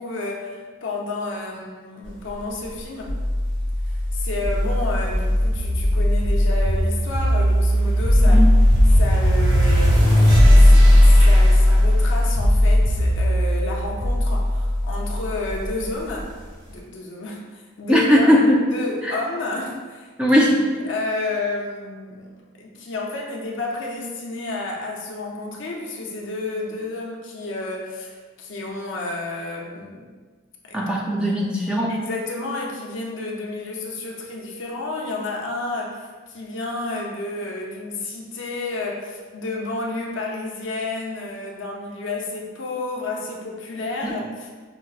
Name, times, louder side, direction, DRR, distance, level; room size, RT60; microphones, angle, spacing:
voice 1, 0.0-3.2 4.1-8.4 8.9-16.3 16.7-20.1 20.7-30.1 30.7-30.8 31.9-44.5, left 2 dB, 70° left, -2 dB, 0.6 m, -31 dB
sound 1, 3.1-16.2, left 1 dB, 60° right, 0.9 m, -17 dB
voice 2, 17.9-18.6 19.0-19.2 20.2-20.6 30.7-32.0 44.0-44.2, equal, 5° right, -4 dB, 0.3 m, -18 dB
5.7 x 2.0 x 2.4 m, 1.4 s
head